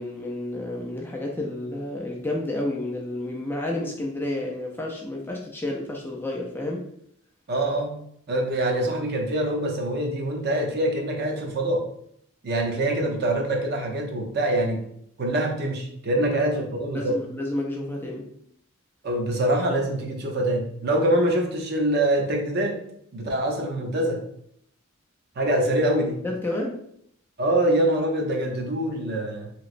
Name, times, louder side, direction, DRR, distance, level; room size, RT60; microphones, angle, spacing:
voice 1, 0.0-6.9 16.2-16.3 16.6-18.3 26.2-26.9, left 1 dB, 10° left, -1 dB, 0.4 m, -31 dB
voice 2, 7.5-8.0 8.3-11.9 12.4-14.9 15.2-17.2 19.0-22.8 23.1-24.3 25.4-26.2 27.4-29.5, right 1 dB, 50° right, 1 dB, 0.6 m, -24 dB
3.0 x 2.9 x 2.5 m, 0.70 s
head